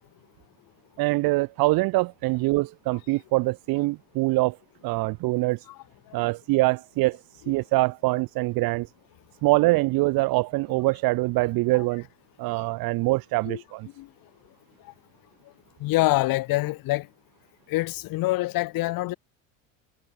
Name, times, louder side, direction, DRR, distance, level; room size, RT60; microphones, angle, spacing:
voice 1, 1.0-4.6 4.8-5.6 6.1-7.2 7.5-8.9 9.4-12.1 12.4-13.9, right 21 dB, 60° right, 1.3 m, -24 dB
voice 2, 15.8-17.1 17.7-19.2, left 19 dB, 55° left, 1.3 m, -25 dB
hypercardioid pair, 80°, 40 cm